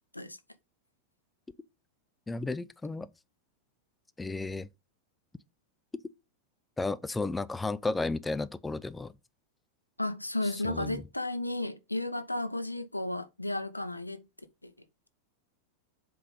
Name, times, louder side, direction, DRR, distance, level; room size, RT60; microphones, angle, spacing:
voice 1, 2.3-3.1 4.2-4.7 6.8-9.1 10.6-11.0, left 3 dB, 10° left, 0.4 m, -33 dB
voice 2, 10.0-14.2 14.6-14.7, left 1 dB, 85° left, 0.6 m, -33 dB
7.5 x 3.9 x 5.0 m
figure-of-eight pair, 90°, 0 cm